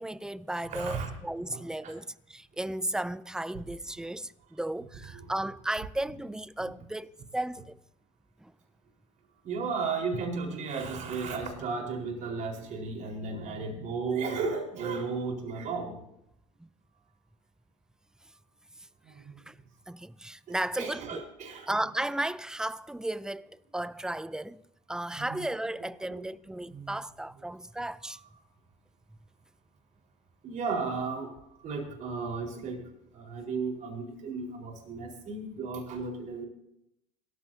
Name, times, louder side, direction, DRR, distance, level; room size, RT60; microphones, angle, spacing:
voice 1, 0.0-7.8 8.4-8.5 16.6-16.7 19.5-19.6 19.9-21.2 21.7-24.6 24.9-28.2, right 1 dB, 5° right, 0.5 m, -34 dB
voice 2, 0.7-1.1 1.5-1.9 5.1-5.4 9.4-15.9 19.3-19.4 20.8-21.8 25.2-25.4 25.8-26.2 26.7-26.9 28.1-28.2 30.4-31.3 31.6-32.8 33.1-36.5, right 4 dB, 45° right, 4.5 m, -34 dB
27.0 x 14.0 x 2.8 m
hypercardioid pair, 75°, 17 cm